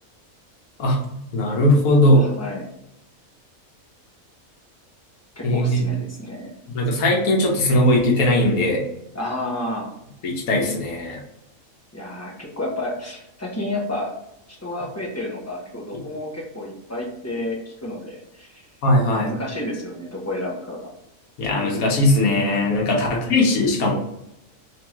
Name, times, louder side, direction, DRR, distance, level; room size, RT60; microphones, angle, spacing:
voice 1, 0.8-2.3 5.4-5.8 6.7-8.8 10.2-11.2 18.8-19.3 21.4-23.9, left 1 dB, 90° left, -1 dB, 1.4 m, -19 dB
voice 2, 2.1-2.7 5.4-6.5 9.1-9.9 11.9-14.1 14.6-18.7 19.1-20.9 22.9-23.1, left 1 dB, 15° left, -3 dB, 0.9 m, -31 dB
3.6 x 3.4 x 3.0 m, 0.83 s
omnidirectional pair, 1.5 m